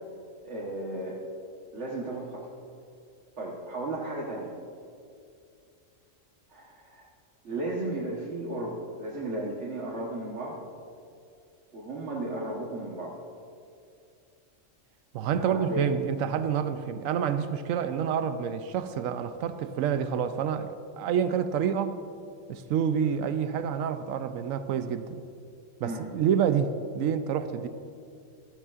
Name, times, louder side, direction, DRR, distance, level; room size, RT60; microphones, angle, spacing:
voice 1, 0.4-1.2 1.7-2.5 3.4-4.5 6.5-7.1 7.4-10.6 11.7-13.2 15.4-15.9 25.8-26.0, right 1 dB, 60° right, -4 dB, 1.5 m, -34 dB
voice 2, 15.1-22.0 22.5-25.2 25.8-27.7, right 8 dB, 90° right, 10 dB, 1.0 m, -28 dB
15.0 x 13.5 x 2.5 m, 2.4 s
omnidirectional pair, 1.3 m